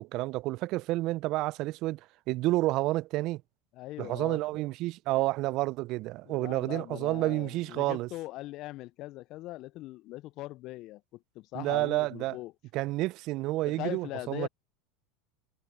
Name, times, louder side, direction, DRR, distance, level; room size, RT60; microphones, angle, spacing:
voice 1, 0.0-2.0 2.3-3.4 4.0-8.1 11.5-12.4 12.7-14.5, right 19 dB, 55° right, 0.4 m, -30 dB
voice 2, 3.7-4.4 6.2-12.5 13.7-14.5, left 18 dB, 55° left, 0.3 m, -41 dB
hypercardioid pair, 85°, 0 cm